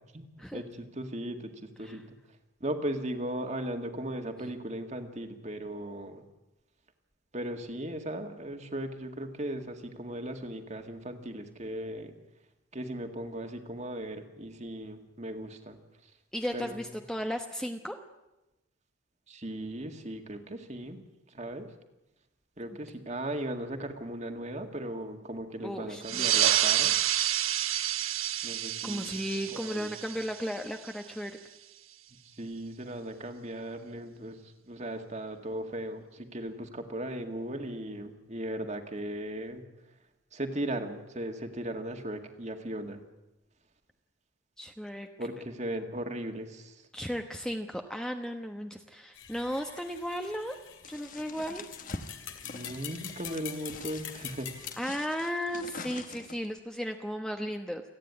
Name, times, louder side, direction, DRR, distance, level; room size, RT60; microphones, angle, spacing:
voice 1, 0.1-2.0 2.6-6.2 7.3-12.1 12.7-15.8 16.5-16.8 19.3-21.0 21.3-21.7 22.6-26.9 28.4-29.1 29.5-29.9 32.4-34.4 34.7-39.6 40.3-43.0 45.2-46.7 52.4-54.5, right 1 dB, 35° right, 5 dB, 2.0 m, -37 dB
voice 2, 16.3-18.0 25.6-26.2 28.8-31.3 44.6-45.1 46.9-50.6 50.9-51.6 54.8-57.8, equal, 5° left, 4 dB, 1.0 m, -35 dB
sound 1, 26.0-31.1, right 12 dB, 85° right, 1.1 m, -29 dB
sound 2, 49.1-54.7, left 9 dB, 65° left, 2.4 m, -45 dB
sound 3, 50.8-56.6, left 3 dB, 40° left, 1.2 m, -45 dB
28.5 x 10.0 x 9.8 m, 1.0 s
head